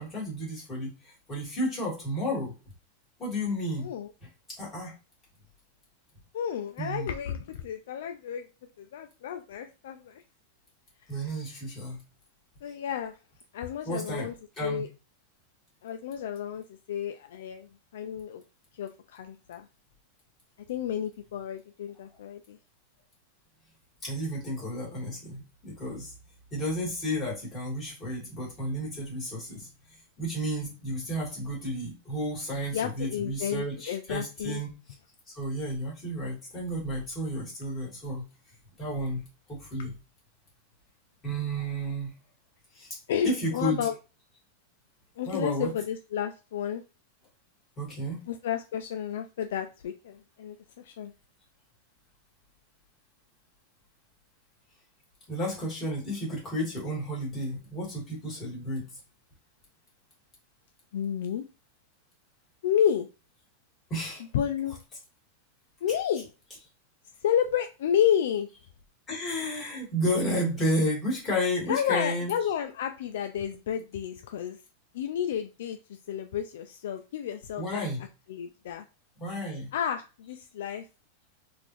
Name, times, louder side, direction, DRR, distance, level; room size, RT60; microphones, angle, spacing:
voice 1, 0.0-2.5 3.2-3.9 4.6-4.9 6.8-7.1 11.1-12.0 13.8-14.3 14.6-14.8 24.0-26.1 26.5-29.7 30.2-34.7 35.3-38.2 38.8-39.2 39.5-39.9 41.2-42.1 42.7-43.0 43.2-43.9 45.3-45.7 47.8-48.2 55.3-58.8 63.9-64.2 69.1-72.3 77.6-78.0 79.2-79.7, equal, 15° left, -5 dB, 1.8 m, -32 dB
voice 2, 3.8-4.1 6.3-8.5 8.8-10.2 11.1-11.6 12.6-13.2 13.5-14.3 14.6-14.9 15.8-18.4 18.7-19.7 20.7-22.6 32.7-34.6 43.1-43.9 45.2-46.8 48.3-51.1 60.9-61.4 62.6-63.1 64.3-64.8 65.8-66.3 67.2-68.5 71.7-74.6 74.9-77.8 78.3-78.9 79.7-80.9, left 9 dB, 70° left, 6 dB, 0.3 m, -31 dB
3.8 x 2.5 x 3.0 m, 0.31 s
supercardioid pair, 165°, 0 cm